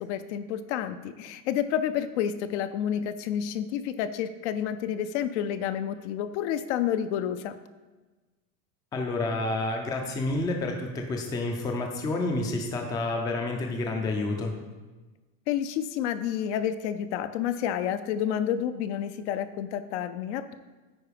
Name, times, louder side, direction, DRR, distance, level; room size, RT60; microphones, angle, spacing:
voice 1, 0.0-7.6 15.5-20.5, left 9 dB, 55° left, 11 dB, 0.5 m, -29 dB
voice 2, 8.9-14.5, left 2 dB, 10° left, 3 dB, 0.4 m, -29 dB
9.5 x 4.7 x 5.0 m, 1.3 s
supercardioid pair, 165°, 41 cm